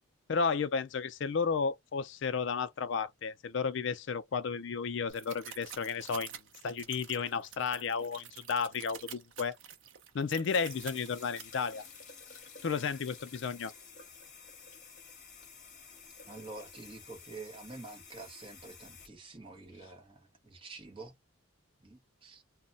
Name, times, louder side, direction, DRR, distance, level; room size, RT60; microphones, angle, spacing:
voice 1, 0.3-6.3 6.6-9.6 10.1-11.8 12.6-13.7, left 5 dB, 55° left, 0.4 m, -33 dB
sound 1, 5.1-11.4, right 9 dB, 65° right, 0.5 m, -48 dB
sound 2, 10.4-19.1, left 5 dB, 35° left, 0.9 m, -52 dB
voice 2, 16.3-21.1 21.8-22.4, right 3 dB, 25° right, 0.7 m, -48 dB
2.2 x 2.0 x 3.7 m
head